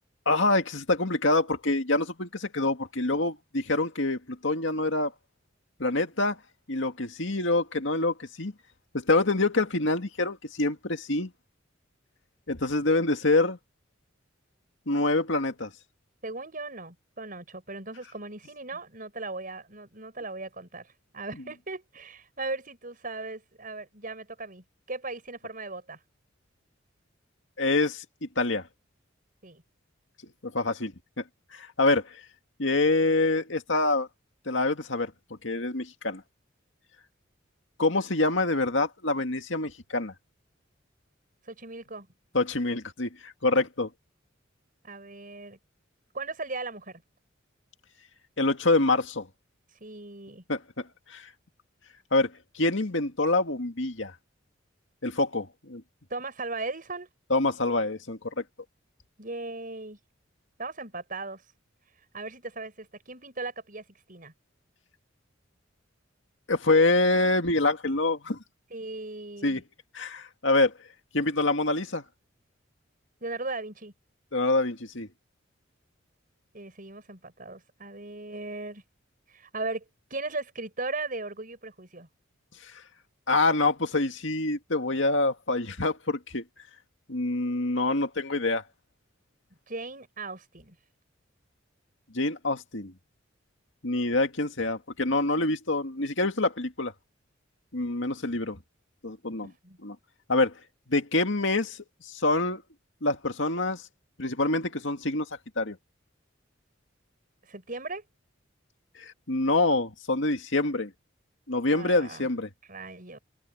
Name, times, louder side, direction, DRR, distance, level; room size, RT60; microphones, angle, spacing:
voice 1, 0.3-5.1 5.8-6.4 6.7-8.5 8.9-11.3 12.5-13.6 14.9-15.7 27.6-28.0 28.4-28.6 30.4-31.2 31.5-32.2 32.6-34.1 34.5-35.1 35.4-36.2 37.8-40.1 42.3-43.9 48.4-49.3 50.5-51.2 52.1-54.1 55.0-55.8 57.3-58.4 66.5-68.4 69.4-69.6 69.9-70.7 71.1-72.0 74.3-75.1 83.3-86.4 87.1-88.6 92.1-92.9 93.8-96.9 97.7-98.6 99.0-99.5 99.8-100.0 100.3-100.5 100.9-101.8 102.1-102.6 103.0-103.8 104.2-105.3 105.6-105.8 109.0-110.9 111.5-112.5, left 2 dB, 70° left, 2.2 m, -26 dB
voice 2, 16.2-26.0 29.4-29.6 41.5-42.1 44.8-45.6 46.1-47.0 49.8-50.4 56.1-57.1 59.2-60.0 60.6-61.4 62.1-64.3 68.7-69.6 73.2-73.9 76.5-78.8 79.3-79.8 80.1-82.1 89.7-90.8 99.4-99.8 107.4-108.0 111.7-112.3 112.7-113.2, right 3 dB, 45° right, 6.7 m, -37 dB
head